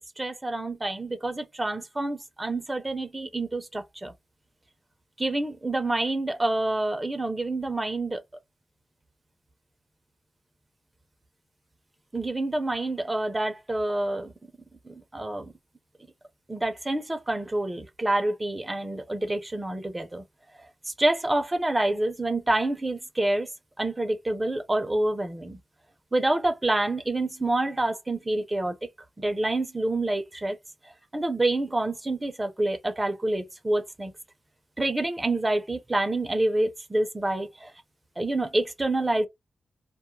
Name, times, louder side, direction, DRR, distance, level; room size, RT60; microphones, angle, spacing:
voice 1, 0.2-4.1 5.2-8.2 12.1-14.3 14.8-15.5 16.5-20.2 20.6-23.5 23.8-25.6 26.1-28.8 29.2-30.6 31.1-34.1 34.8-37.7 38.2-39.3, right 2 dB, 20° right, 0.5 m, -27 dB
2.2 x 2.0 x 3.1 m
cardioid pair, 85°, 0 cm